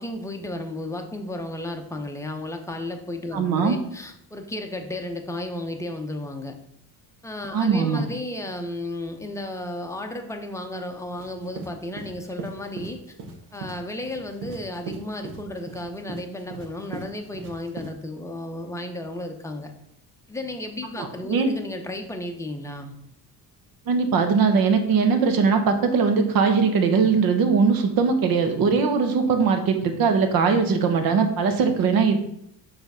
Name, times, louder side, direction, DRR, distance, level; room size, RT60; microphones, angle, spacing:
voice 1, 0.0-6.6 7.2-13.2 13.5-19.7 20.3-23.0, left 1 dB, 5° left, 4 dB, 0.6 m, -33 dB
voice 2, 3.3-3.8 7.5-8.0 21.0-21.5 23.9-32.2, right 5 dB, 60° right, 7 dB, 1.1 m, -20 dB
sound 1, 11.2-17.9, right 3 dB, 80° right, 1.3 m, -39 dB
7.0 x 3.4 x 5.5 m, 0.75 s
cardioid pair, 155°, 40 cm